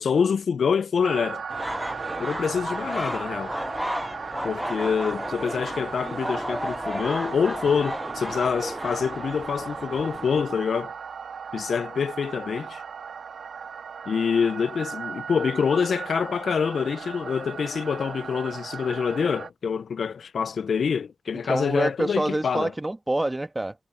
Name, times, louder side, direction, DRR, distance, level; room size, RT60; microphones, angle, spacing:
voice 1, 0.0-1.4 2.2-3.6 4.4-10.9 11.5-12.8 14.1-22.7, left 6 dB, 70° left, 0.6 m, -26 dB
sound 1, 1.0-19.5, right 6 dB, 70° right, 2.2 m, -37 dB
sound 2, 1.5-10.4, equal, ahead, 0.8 m, -33 dB
voice 2, 21.5-23.7, right 1 dB, 20° right, 1.6 m, -26 dB
supercardioid pair, 50°, 0 cm